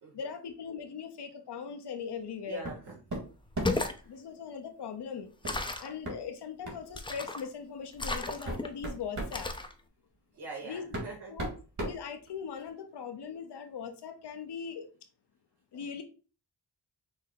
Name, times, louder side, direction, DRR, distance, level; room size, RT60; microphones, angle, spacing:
voice 1, 0.1-2.6 4.0-5.3 5.8-9.5 10.7-10.9 11.3-11.5 11.8-14.9 15.7-16.0, left 6 dB, 80° left, 6 dB, 0.9 m, -40 dB
voice 2, 2.5-3.0 4.0-4.1 10.3-11.4 15.7-15.8, right 3 dB, 75° right, -2 dB, 1.4 m, -44 dB
sound 1, 2.6-2.8 3.1-3.9 5.4-5.6 6.0-6.2 6.6-6.8 7.7-7.8 8.2-9.4 10.4-10.5 10.9-12.7, right 1 dB, 45° right, 2.2 m, -37 dB
sound 2, 3.5-4.0 5.4-5.9 6.9-7.5 8.0-8.7 9.3-9.7, left 2 dB, 10° left, 0.6 m, -33 dB
6.2 x 2.1 x 3.9 m, 0.36 s
cardioid pair, 80°, 40 cm